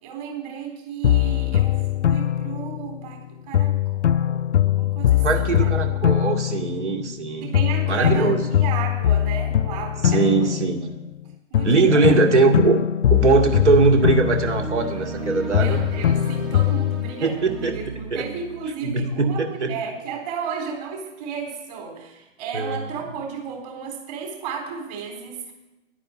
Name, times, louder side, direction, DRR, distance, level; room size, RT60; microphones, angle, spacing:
voice 1, 0.0-5.7 7.4-10.6 11.5-12.1 15.5-25.5, right 6 dB, 35° right, 2 dB, 4.1 m, -34 dB
sound 1, 1.0-3.2 3.5-7.2 7.5-11.2 11.5-15.2 15.5-17.1, left 11 dB, 60° left, 0.5 m, -22 dB
voice 2, 5.2-7.5 7.9-8.4 10.0-10.8 11.6-12.8 13.1-15.9 17.2-17.8 18.1-18.2 18.8-19.7 22.5-22.8, right 4 dB, 60° right, 5 dB, 2.4 m, -20 dB
sound 2, 13.1-13.4 13.8-18.7, right 3 dB, 10° right, 0.8 m, -34 dB
11.0 x 10.0 x 8.6 m, 1.0 s
figure-of-eight pair, 135°, 38 cm